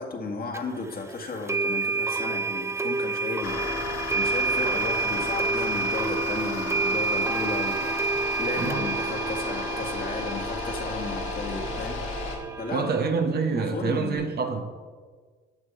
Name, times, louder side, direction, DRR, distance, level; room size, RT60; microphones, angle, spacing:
voice 1, 0.0-3.6 4.1-12.0 12.6-12.8 13.5-14.2, left 3 dB, 50° left, 2.0 m, -34 dB
sound 1, 0.5-0.6 1.5-13.1, right 4 dB, 15° right, 0.6 m, -29 dB
sound 2, 3.4-12.4, left 4 dB, 80° left, 2.0 m, -34 dB
Telephone, 8.2-14.2, right 7 dB, 90° right, 3.3 m, -43 dB
voice 2, 12.7-14.7, right 5 dB, 55° right, 1.1 m, -27 dB
11.5 x 7.2 x 4.5 m
cardioid pair, 90°, 20 cm